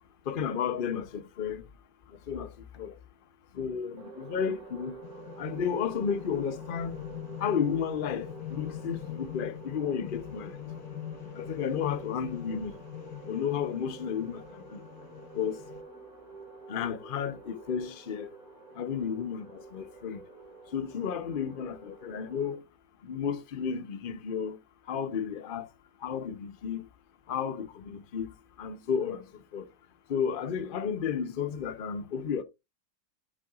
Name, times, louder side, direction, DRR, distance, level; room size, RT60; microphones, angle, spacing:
voice 1, 0.3-1.7 2.3-3.0 3.5-5.0 5.4-7.0 7.4-10.6 11.3-12.7 13.3-14.8 15.3-15.6 16.7-18.3 18.8-20.2 20.7-22.6 23.0-24.6 24.9-25.7 26.0-26.9 27.3-28.3 28.6-29.3 29.5-29.7 30.1-32.4, left 7 dB, 50° left, 0.6 m, -32 dB
sound 1, 4.0-22.5, right 4 dB, 55° right, 3.0 m, -49 dB
sound 2, 5.0-15.8, left 12 dB, 65° left, 1.3 m, -43 dB
7.7 x 7.6 x 2.5 m
omnidirectional pair, 1.9 m